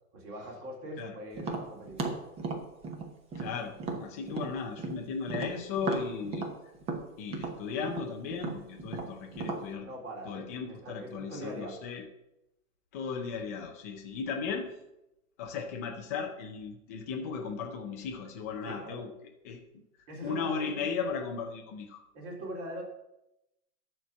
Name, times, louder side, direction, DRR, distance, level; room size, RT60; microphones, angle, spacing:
voice 1, 0.1-2.2 9.8-11.7 18.6-19.0 20.1-21.1 22.1-22.8, right 1 dB, 50° right, -1 dB, 4.3 m, -42 dB
Tap, 1.4-5.0 5.3-9.7, right 3 dB, 15° right, 0.9 m, -36 dB
voice 2, 3.3-6.5 7.2-9.9 10.2-12.0 12.9-14.7 15.4-19.1 19.4-19.6 20.2-22.0, left 5 dB, 10° left, 2 dB, 0.4 m, -36 dB
12.5 x 4.5 x 7.3 m, 0.89 s
hypercardioid pair, 150°, 47 cm